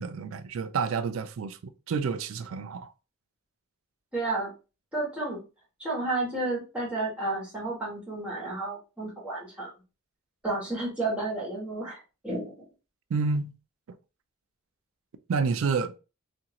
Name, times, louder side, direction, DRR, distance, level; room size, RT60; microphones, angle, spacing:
voice 1, 0.0-2.9 13.1-13.6 13.9-14.0 15.3-15.9, right 5 dB, 70° right, 0.4 m, -29 dB
voice 2, 4.1-4.5 4.9-5.4 5.8-9.7 10.4-12.6, right 2 dB, 5° right, 1.4 m, -31 dB
2.8 x 2.6 x 2.8 m
head